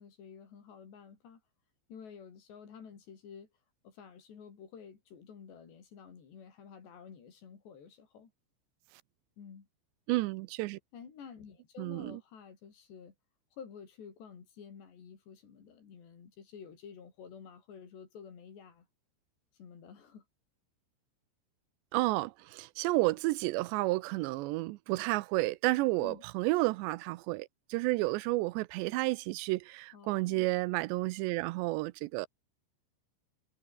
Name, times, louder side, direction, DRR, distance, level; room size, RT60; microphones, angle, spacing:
voice 1, 0.0-1.4 1.9-3.5 3.8-8.3 9.4-9.7 10.9-13.1 13.5-18.9 19.6-20.3 26.0-26.2 29.9-30.5, left 7 dB, 70° left, 6.5 m, -51 dB
voice 2, 10.1-10.8 11.8-12.2 21.9-32.3, right 20 dB, 85° right, 2.8 m, -31 dB
omnidirectional pair, 5.1 m